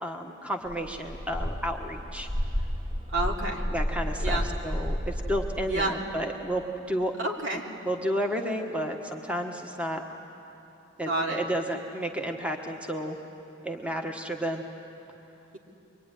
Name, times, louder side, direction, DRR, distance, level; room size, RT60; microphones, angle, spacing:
voice 1, 0.0-2.3 3.7-7.2 7.5-10.0 11.0-13.2 13.6-14.6, equal, 5° right, 3 dB, 1.3 m, -32 dB
sound 1, 0.7-5.9, equal, 30° right, 1.3 m, -31 dB
voice 2, 3.1-3.6 4.2-4.5 5.7-5.9 7.2-7.6 11.1-11.4, right 2 dB, 65° right, 0 dB, 2.9 m, -29 dB
24.0 x 24.0 x 10.0 m, 2.9 s
head